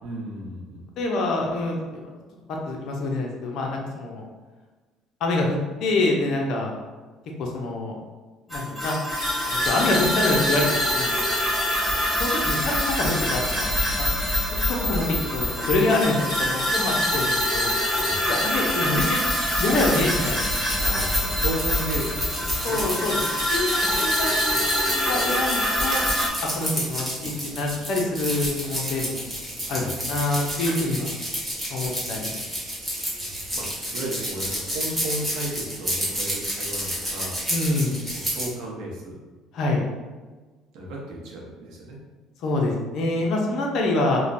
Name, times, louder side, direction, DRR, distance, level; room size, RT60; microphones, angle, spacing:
voice 1, 0.0-0.9 18.0-18.3 20.7-22.8 29.6-30.2 33.5-33.7 33.9-37.4 38.1-39.2 40.7-42.0, right 1 dB, 75° right, -2 dB, 0.8 m, -34 dB
voice 2, 1.0-2.0 2.7-4.2 5.2-6.7 7.4-7.9 8.5-9.0 9.4-11.2 12.2-13.7 14.8-15.0 15.3-17.7 18.3-19.2 19.6-20.4 22.6-23.2 23.5-26.0 26.4-29.2 29.7-31.2 31.7-32.4 37.5-38.0 39.5-39.8 42.4-44.2, left 2 dB, 60° left, -1 dB, 0.5 m, -26 dB
sound 1, 8.5-26.3, left 1 dB, 15° left, 1.2 m, -25 dB
sound 2, 19.0-38.5, equal, 10° right, 1.2 m, -31 dB
3.0 x 2.1 x 2.6 m, 1.3 s
cardioid pair, 105°, 0 cm